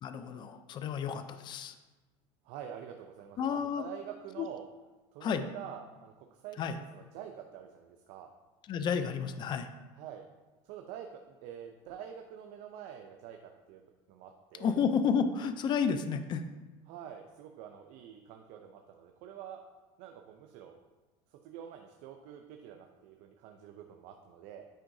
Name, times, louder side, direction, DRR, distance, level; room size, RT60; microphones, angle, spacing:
voice 1, 0.0-1.7 3.4-3.8 4.4-4.5 5.2-5.5 6.6-6.8 8.7-9.7 14.6-16.4, left 6 dB, 35° left, 10 dB, 0.4 m, -31 dB
voice 2, 2.4-4.7 5.1-6.6 6.9-8.3 9.9-10.3 10.6-14.8 16.9-19.6 20.0-20.8 21.3-24.7, right 9 dB, 65° right, 4 dB, 0.5 m, -47 dB
8.9 x 4.6 x 2.7 m, 1.2 s
cardioid pair, 130°, 13 cm